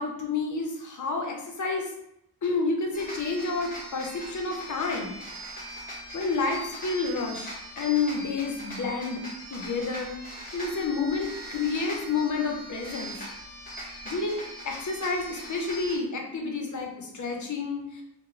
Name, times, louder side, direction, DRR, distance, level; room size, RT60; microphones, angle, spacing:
voice 1, 0.0-1.9 2.4-5.1 6.1-9.2 9.5-10.1 10.5-13.2 14.0-18.0, left 4 dB, 50° left, 1 dB, 0.5 m, -29 dB
sound 1, 2.9-16.0, equal, 20° left, 0.9 m, -41 dB
2.9 x 2.0 x 2.4 m, 0.78 s
wide cardioid pair, 100°, 38 cm